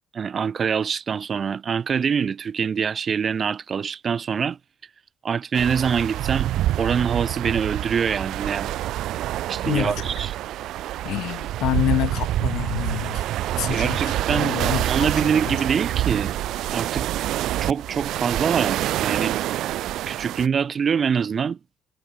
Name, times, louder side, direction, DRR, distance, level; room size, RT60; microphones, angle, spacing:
voice 1, 0.1-4.6 5.2-8.7 9.5-10.3 13.7-16.3 16.7-17.1 17.6-19.3 20.1-21.6, right 6 dB, 50° right, 1.3 m, -25 dB
sound 1, 5.5-20.5, right 14 dB, 85° right, 0.3 m, -26 dB
voice 2, 9.6-10.1 11.0-13.2 13.6-15.1 15.5-15.6, left 15 dB, 90° left, 1.0 m, -27 dB
cardioid pair, 90°, 0 cm